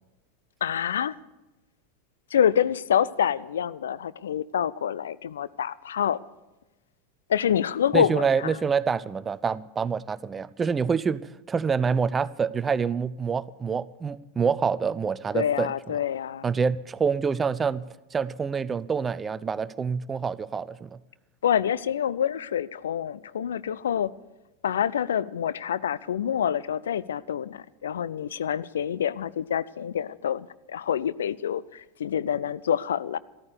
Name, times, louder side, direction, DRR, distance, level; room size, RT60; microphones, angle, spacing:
voice 1, 0.6-1.1 2.3-6.2 7.3-8.6 15.3-16.5 21.4-24.1 24.6-33.2, left 9 dB, 70° left, 0.4 m, -27 dB
voice 2, 7.9-11.2 11.5-15.7 16.4-17.8 18.1-21.0, right 6 dB, 20° right, 0.5 m, -26 dB
13.5 x 13.0 x 6.8 m
figure-of-eight pair, 85°, 0 cm